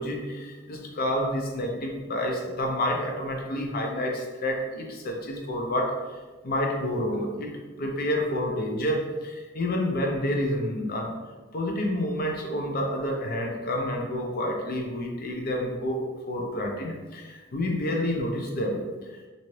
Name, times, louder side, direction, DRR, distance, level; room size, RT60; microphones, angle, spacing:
voice 1, 0.0-7.5 7.8-11.1 11.5-18.8 19.1-19.2, left 1 dB, 50° left, 1 dB, 0.6 m, -29 dB
2.7 x 2.6 x 3.1 m, 1.3 s
head